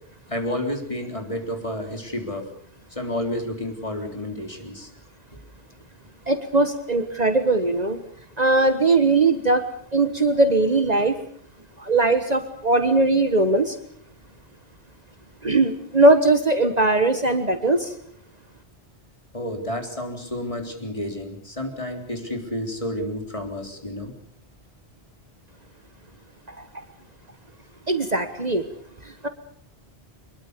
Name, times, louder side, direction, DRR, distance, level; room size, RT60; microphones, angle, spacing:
voice 1, 0.3-2.5 2.9-4.9 5.3-5.4 19.3-24.1, left 1 dB, 30° left, 4 dB, 4.0 m, -30 dB
voice 2, 6.3-8.0 8.4-9.6 9.9-11.1 11.8-13.7 15.4-17.9 27.9-28.6, right 2 dB, 40° right, 9 dB, 1.5 m, -20 dB
24.0 x 22.0 x 6.8 m, 0.62 s
omnidirectional pair, 1.1 m